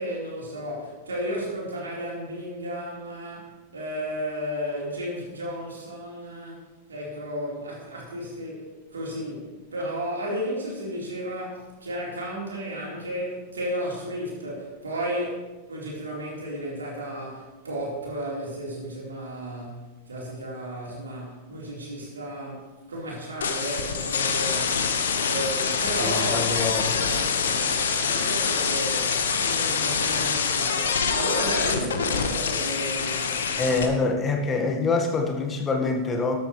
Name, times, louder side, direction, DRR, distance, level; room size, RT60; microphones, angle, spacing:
voice 1, 0.0-6.6 6.9-33.5, equal, 70° right, -4 dB, 4.2 m, -33 dB
sound 1, 23.4-33.9, left 6 dB, 65° left, 1.2 m, -25 dB
voice 2, 26.0-26.9 33.6-36.4, left 3 dB, 20° left, 2 dB, 1.7 m, -25 dB
13.0 x 12.5 x 3.3 m, 1.2 s
figure-of-eight pair, 90°, 0 cm